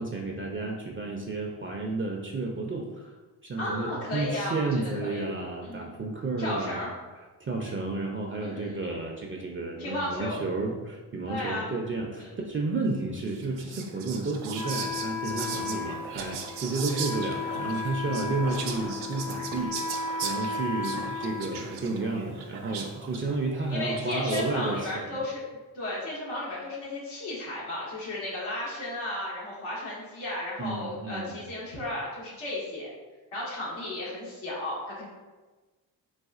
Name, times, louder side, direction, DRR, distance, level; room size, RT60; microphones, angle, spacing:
voice 1, 0.0-3.2 3.4-6.9 7.2-25.2 30.6-31.4, right 3 dB, 25° right, 0 dB, 0.5 m, -32 dB
voice 2, 3.6-5.3 5.6-6.0 6.4-6.9 8.4-8.8 9.8-10.4 11.3-11.7 12.2-12.3 23.7-25.4 25.7-32.9 33.3-35.1, left 1 dB, 80° left, -6 dB, 1.2 m, -34 dB
Whispering, 13.3-24.6, right 6 dB, 75° right, 0.6 m, -39 dB
Wind instrument woodwind instrument, 14.5-22.3, left 4 dB, 55° left, 0.6 m, -35 dB
4.0 x 2.3 x 2.4 m, 1.2 s
hypercardioid pair, 40°, 49 cm